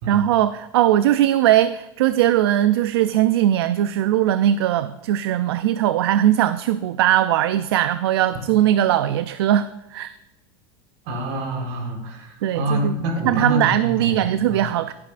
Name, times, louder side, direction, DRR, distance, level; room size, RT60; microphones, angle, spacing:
voice 1, 0.1-10.1 12.4-12.9 13.2-14.9, right 12 dB, 85° right, 13 dB, 0.4 m, -19 dB
voice 2, 11.0-14.7, right 1 dB, 65° right, 1 dB, 3.8 m, -27 dB
15.0 x 8.5 x 2.5 m, 0.99 s
supercardioid pair, 110°, 13 cm